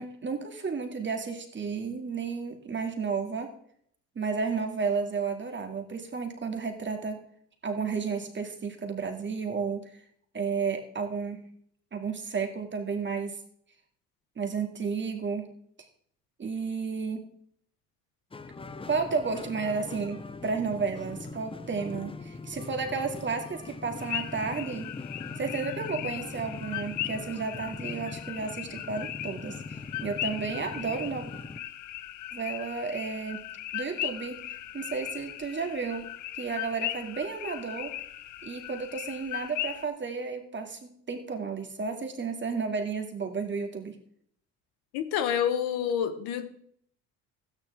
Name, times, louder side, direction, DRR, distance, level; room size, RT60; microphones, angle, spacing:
voice 1, 0.0-3.5 4.2-7.2 7.6-9.9 10.3-11.4 11.9-13.4 14.4-15.5 16.4-17.3 18.9-24.9 25.4-31.3 32.3-33.4 33.7-36.1 36.4-37.9 38.4-43.9, right 5 dB, 30° right, 5 dB, 2.4 m, -32 dB
sound 1, 18.3-31.6, left 3 dB, 15° left, 0.8 m, -41 dB
sound 2, 24.0-39.9, left 13 dB, 50° left, 0.7 m, -38 dB
voice 2, 44.9-46.5, left 9 dB, 75° left, 10 dB, 1.4 m, -28 dB
13.0 x 9.7 x 3.6 m, 0.63 s
supercardioid pair, 80°, 37 cm